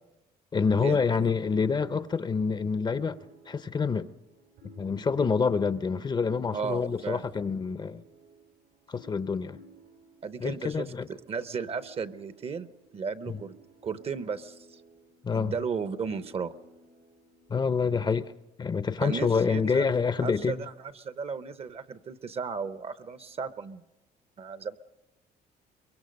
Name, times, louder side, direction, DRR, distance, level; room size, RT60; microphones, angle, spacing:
voice 1, 0.5-3.2 3.5-4.1 4.8-8.0 8.9-9.6 10.4-11.1 15.2-15.5 17.5-18.3 18.6-20.6, left 5 dB, 25° left, 0.6 m, -27 dB
sound 1, 0.7-18.2, right 2 dB, 90° right, 6.3 m, -57 dB
voice 2, 6.5-7.2 10.2-12.7 12.9-13.5 13.8-14.8 15.3-16.5 19.0-19.9 20.2-23.8 24.4-24.8, right 5 dB, 35° right, 0.8 m, -35 dB
23.5 x 22.5 x 5.3 m
cardioid pair, 110°, 17 cm